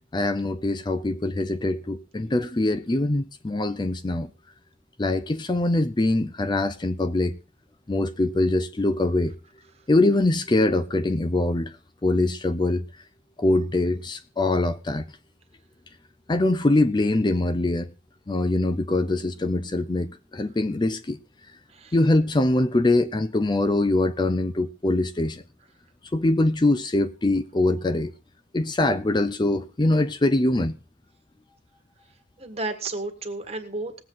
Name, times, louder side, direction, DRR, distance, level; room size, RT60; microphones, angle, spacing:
voice 1, 0.1-4.3 5.0-7.4 7.9-9.3 9.9-11.7 12.0-12.8 13.4-15.1 16.3-17.9 18.3-21.2 21.9-25.4 26.1-28.1 28.5-30.8, left 2 dB, 25° left, 0.5 m, -23 dB
voice 2, 32.4-34.0, right 2 dB, 35° right, 1.7 m, -32 dB
20.0 x 7.9 x 3.9 m
head